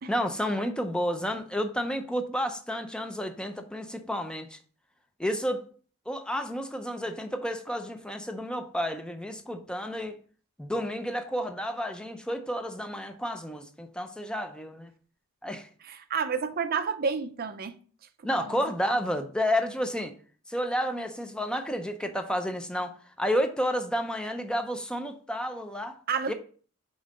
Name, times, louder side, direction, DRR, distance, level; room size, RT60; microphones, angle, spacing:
voice 1, 0.1-4.6 5.2-5.6 6.1-10.2 10.6-14.9 15.4-15.7 18.2-20.1 20.5-26.0 26.3-26.4, equal, 5° left, 0.5 m, -31 dB
voice 2, 15.8-17.8 18.4-18.6 26.1-26.3, right 5 dB, 50° right, 0.5 m, -30 dB
5.4 x 3.8 x 5.0 m
head